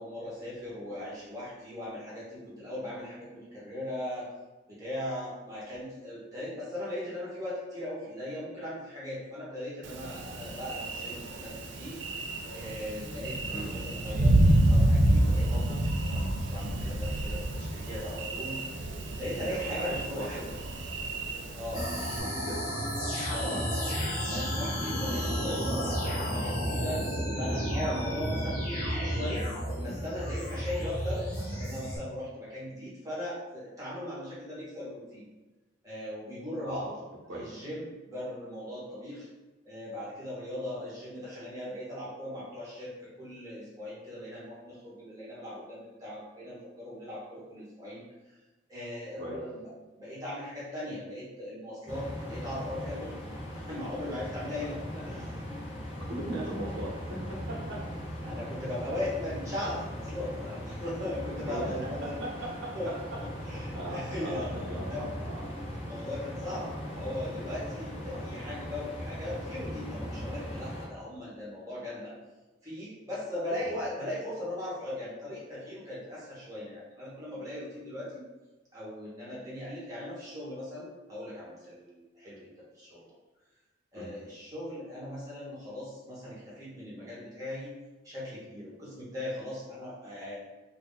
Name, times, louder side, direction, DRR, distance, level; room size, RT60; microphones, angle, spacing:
voice 1, 0.0-4.3 4.7-12.0 12.5-18.6 19.2-20.5 21.5-21.9 23.3-23.9 24.3-27.0 27.3-29.5 29.8-35.2 35.8-37.0 37.3-39.3 39.6-48.0 48.7-49.7 50.0-53.2 53.5-55.3 58.2-62.5 62.7-63.1 63.4-65.0 65.7-72.1 72.6-78.2 78.7-83.1 83.9-87.7 88.0-90.4, left 1 dB, 15° right, -9 dB, 1.2 m, -38 dB
Thunder, 9.8-22.2, right 1 dB, 60° right, 0.4 m, -28 dB
voice 2, 19.8-20.4 22.2-22.6 23.0-23.6 23.9-24.4 25.4-25.6 36.6-37.0 37.3-37.4 49.2-49.4 55.9-57.8 61.5-61.7 62.0-62.9 63.7-65.5 66.6-66.8 68.1-68.3 73.6-73.7 83.9-84.1, right 1 dB, 80° right, -5 dB, 1.0 m, -39 dB
sound 1, 21.7-32.0, equal, 45° left, 1.0 m, -32 dB
sound 2, 51.9-70.9, equal, 30° left, 0.7 m, -39 dB
2.8 x 2.6 x 3.9 m, 1.1 s
head